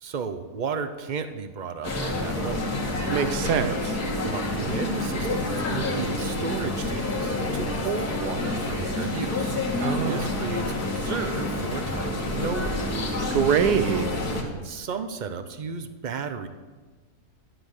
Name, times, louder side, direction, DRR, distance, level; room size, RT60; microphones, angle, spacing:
voice 1, 0.0-2.9 4.2-9.6 10.0-12.8 14.4-16.5, right 5 dB, 50° right, 9 dB, 0.5 m, -34 dB
sound 1, 1.8-14.4, left 2 dB, 75° left, 2.2 m, -28 dB
voice 2, 3.1-3.9 9.8-10.3 13.3-14.1, right 8 dB, 85° right, 12 dB, 1.3 m, -24 dB
11.0 x 8.0 x 6.5 m, 1.3 s
omnidirectional pair, 1.7 m